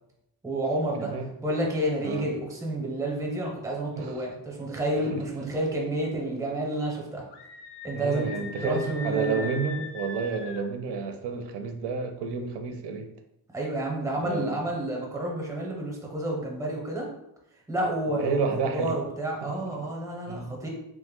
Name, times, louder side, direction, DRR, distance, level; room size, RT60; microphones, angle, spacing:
voice 1, 0.4-1.1 1.4-7.2 7.8-9.5 13.5-17.1 17.7-18.5 18.7-20.7, right 1 dB, 10° right, -1 dB, 0.5 m, -30 dB
voice 2, 1.0-1.3 2.0-2.3 3.9-4.2 5.1-5.2 7.9-13.1 14.2-14.7 18.1-19.0 19.4-19.9 20.3-20.5, right 4 dB, 90° right, 6 dB, 0.5 m, -31 dB
Screaming, 7.3-10.7, left 4 dB, 90° left, 0.5 m, -40 dB
3.1 x 2.1 x 3.5 m, 0.84 s
wide cardioid pair, 170°, 40 cm